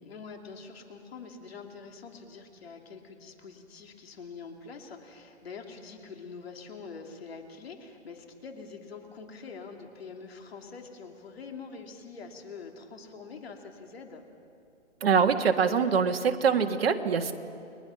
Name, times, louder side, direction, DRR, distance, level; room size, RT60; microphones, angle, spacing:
voice 1, 0.0-14.2, left 5 dB, 50° left, 3 dB, 3.0 m, -45 dB
voice 2, 15.0-17.3, right 6 dB, 50° right, 4 dB, 1.7 m, -24 dB
30.0 x 21.5 x 5.9 m, 2.6 s
hypercardioid pair, 160°, 38 cm